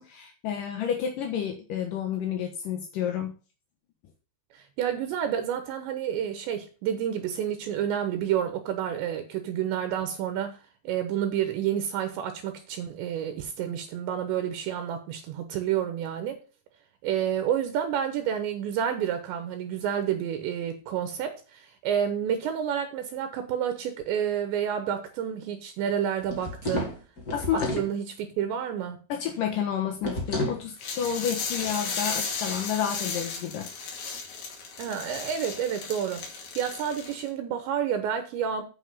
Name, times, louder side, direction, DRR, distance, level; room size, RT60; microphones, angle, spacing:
voice 1, 0.0-3.3 27.3-27.8 29.1-33.7, left 8 dB, 75° left, 2.0 m, -30 dB
voice 2, 4.5-10.6 10.8-16.4 17.0-27.0 27.5-29.0 34.8-36.3 36.6-38.6, right 9 dB, 75° right, 3.1 m, -29 dB
sound 1, 26.2-27.9 30.0-30.6, left 1 dB, 30° left, 1.7 m, -31 dB
sound 2, 30.8-37.3, left 5 dB, 55° left, 3.5 m, -35 dB
9.5 x 5.6 x 5.5 m
omnidirectional pair, 5.6 m